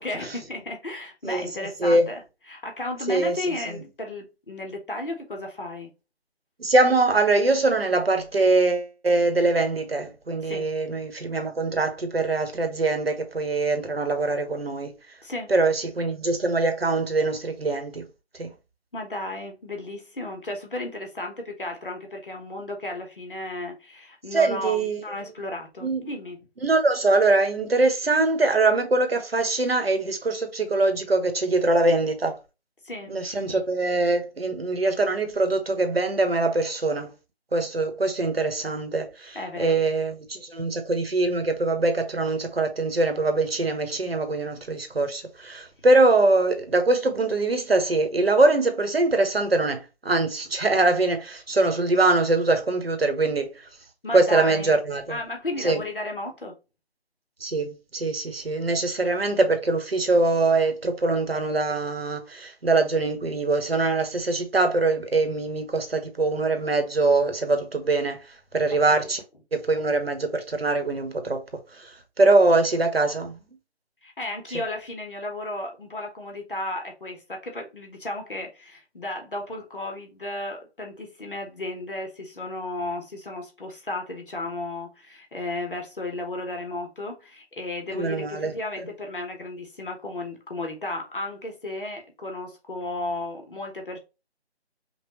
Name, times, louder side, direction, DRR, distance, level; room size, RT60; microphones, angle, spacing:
voice 1, 0.0-5.9 10.4-10.7 15.2-15.5 18.9-26.5 32.8-33.2 33.4-33.6 39.3-39.8 54.0-54.8 55.1-56.5 74.0-94.0, left 2 dB, 55° left, 1.3 m, -34 dB
voice 2, 1.2-2.1 3.1-3.4 6.6-14.9 15.5-18.0 18.4-18.5 24.3-25.0 25.8-26.1 26.6-32.4 33.1-37.1 37.5-53.7 54.1-55.2 55.6-55.8 57.4-68.2 68.5-69.2 69.5-71.4 71.7-73.4 87.9-88.5, right 2 dB, 60° right, 1.2 m, -23 dB
5.4 x 2.4 x 3.1 m
figure-of-eight pair, 165°, 33 cm